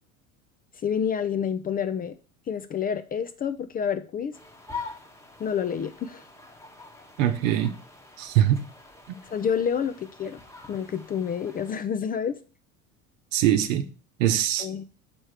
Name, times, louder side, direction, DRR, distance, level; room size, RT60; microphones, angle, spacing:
voice 1, 0.8-2.1 2.5-4.3 5.4-6.2 9.2-10.4 10.7-12.4 14.6-14.8, left 7 dB, 25° left, 0.4 m, -28 dB
sound 1, 4.3-11.7, left 4 dB, 5° left, 0.9 m, -44 dB
voice 2, 7.2-7.8 8.2-8.7 9.1-9.2 13.3-13.9 14.2-14.7, right 11 dB, 70° right, 0.9 m, -22 dB
6.0 x 4.4 x 4.8 m
hypercardioid pair, 75°, 41 cm